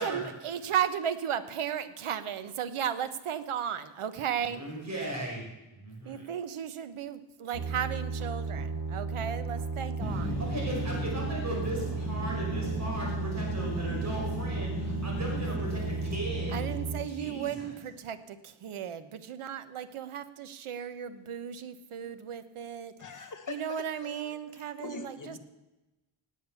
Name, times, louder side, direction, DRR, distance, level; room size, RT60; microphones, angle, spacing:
voice 1, 0.0-4.6 6.0-10.4 16.5-22.9 23.5-25.4, right 9 dB, 85° right, 12 dB, 1.1 m, -35 dB
voice 2, 4.4-5.4 5.7-6.2 10.2-16.6 17.1-17.7, right 1 dB, 35° right, -2 dB, 5.6 m, -37 dB
sound 1, 7.5-17.0, right 4 dB, 50° right, 2.6 m, -34 dB
sound 2, 10.0-16.8, left 1 dB, ahead, 5.7 m, -36 dB
voice 3, 23.0-25.4, left 6 dB, 40° left, 6 dB, 1.4 m, -44 dB
18.0 x 8.7 x 7.1 m, 1.0 s
wide cardioid pair, 175°, 49 cm